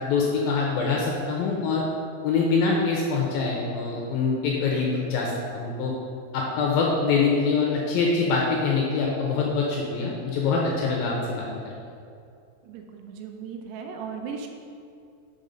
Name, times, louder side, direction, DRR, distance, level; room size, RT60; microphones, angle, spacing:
voice 1, 0.0-1.8 2.2-5.9 6.3-11.5, left 4 dB, 80° left, -2 dB, 2.2 m, -24 dB
voice 2, 12.6-14.5, right 6 dB, 90° right, 4 dB, 2.8 m, -37 dB
6.1 x 5.4 x 5.1 m, 2.4 s
omnidirectional pair, 4.7 m